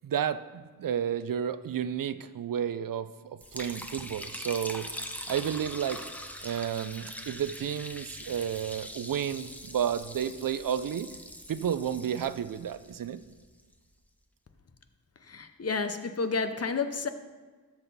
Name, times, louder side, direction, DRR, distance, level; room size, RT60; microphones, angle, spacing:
voice 1, 0.0-6.0 6.4-11.1 11.5-13.2, right 9 dB, 65° right, 13 dB, 0.5 m, -32 dB
Liquid, 3.4-13.6, equal, 5° left, 0.8 m, -42 dB
voice 2, 15.2-17.1, left 4 dB, 40° left, 10 dB, 0.7 m, -30 dB
13.5 x 5.5 x 4.1 m, 1.4 s
wide cardioid pair, 75°, 37 cm